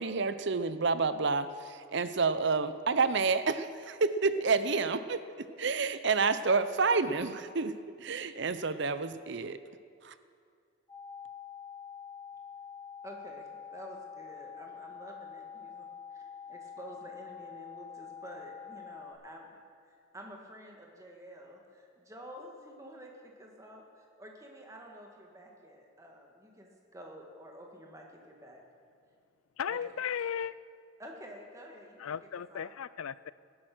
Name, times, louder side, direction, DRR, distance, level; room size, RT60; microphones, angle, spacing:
voice 1, 0.0-7.7 8.0-9.6 10.0-10.1, right 4 dB, 55° right, 12 dB, 0.7 m, -29 dB
sound 1, 10.9-19.1, left 7 dB, 20° left, 3.9 m, -46 dB
voice 2, 13.0-19.5 19.9-28.6 29.7-30.0 31.0-32.1 32.5-32.7, equal, 15° right, 0 dB, 1.9 m, -50 dB
voice 3, 29.6-30.5 32.0-33.3, left 8 dB, 85° left, 18 dB, 0.4 m, -35 dB
18.0 x 11.0 x 6.2 m, 2.3 s
head